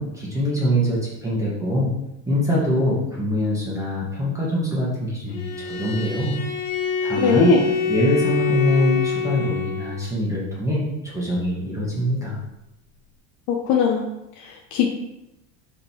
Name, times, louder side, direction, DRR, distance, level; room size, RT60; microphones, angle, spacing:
voice 1, 0.0-1.9 2.3-6.4 7.0-7.6 7.9-12.4, equal, 10° right, -6 dB, 1.8 m, -23 dB
Bowed string instrument, 5.3-10.0, left 5 dB, 85° left, 1.9 m, -26 dB
voice 2, 7.2-7.6 13.5-14.0 14.4-14.9, left 5 dB, 60° left, 1 dB, 0.9 m, -19 dB
5.3 x 5.2 x 4.5 m, 0.90 s
cardioid pair, 135°, 35 cm